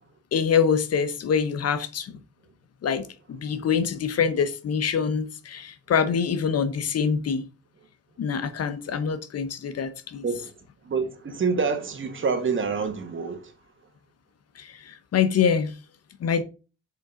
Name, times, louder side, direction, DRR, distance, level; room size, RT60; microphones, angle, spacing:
voice 1, 0.3-2.1 2.8-7.5 8.2-10.2 14.6-15.7 16.2-16.4, left 7 dB, 55° left, 0.9 m, -25 dB
voice 2, 10.9-13.5, right 5 dB, 40° right, 1.7 m, -27 dB
6.7 x 5.3 x 3.8 m
cardioid pair, 90°, 30 cm